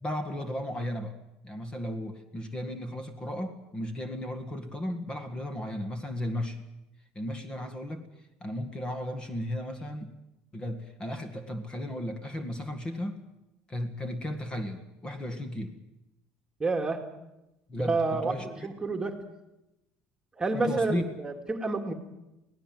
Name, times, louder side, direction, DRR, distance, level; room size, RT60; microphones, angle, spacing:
voice 1, 0.0-1.2 1.4-6.6 7.2-8.1 8.4-10.1 10.5-13.2 13.7-15.8 17.7-18.7 20.5-21.0, left 1 dB, 20° left, 8 dB, 2.0 m, -35 dB
voice 2, 16.6-17.1 17.8-19.2 20.4-21.9, right 3 dB, 15° right, 4 dB, 2.2 m, -29 dB
24.0 x 17.0 x 7.7 m, 0.92 s
cardioid pair, 130°, 4 cm